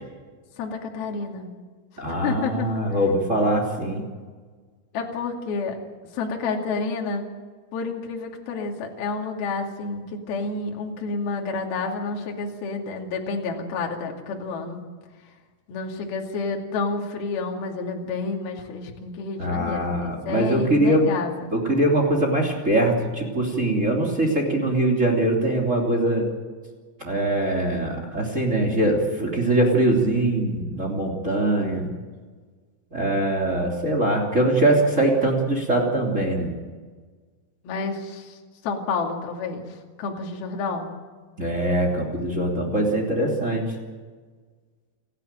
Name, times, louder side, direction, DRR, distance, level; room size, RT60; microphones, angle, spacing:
voice 1, 0.6-1.5 2.1-2.7 4.9-5.8 6.1-7.2 7.7-14.8 15.7-21.5 37.6-38.4 38.6-39.7 40.0-40.9, left 4 dB, 55° left, 1 dB, 3.9 m, -29 dB
voice 2, 2.0-4.0 19.4-21.1 21.5-26.3 27.0-31.9 32.9-36.5 41.4-43.7, right 1 dB, 20° right, 0 dB, 2.2 m, -22 dB
29.0 x 11.5 x 9.1 m, 1.5 s
omnidirectional pair, 6.0 m